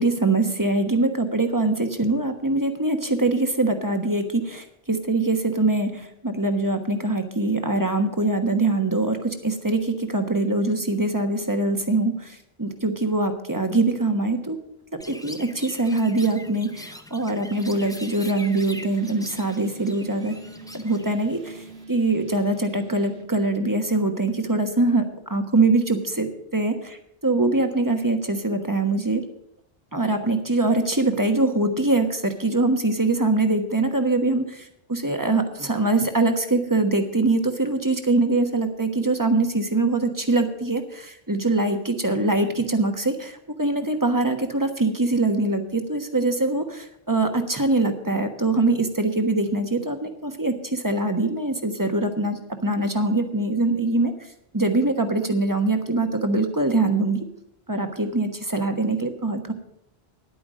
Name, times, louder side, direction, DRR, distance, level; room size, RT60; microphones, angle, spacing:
voice 1, 0.0-14.6 14.9-20.4 20.7-27.0 27.2-29.2 29.9-57.3 57.7-59.5, right 2 dB, 20° right, 6 dB, 1.2 m, -23 dB
Chirp tweet, 15.0-21.8, left 1 dB, 5° left, 0.5 m, -43 dB
sound 1, 17.5-23.2, right 3 dB, 85° right, 1.5 m, -44 dB
10.5 x 9.2 x 6.4 m, 0.75 s
omnidirectional pair, 1.0 m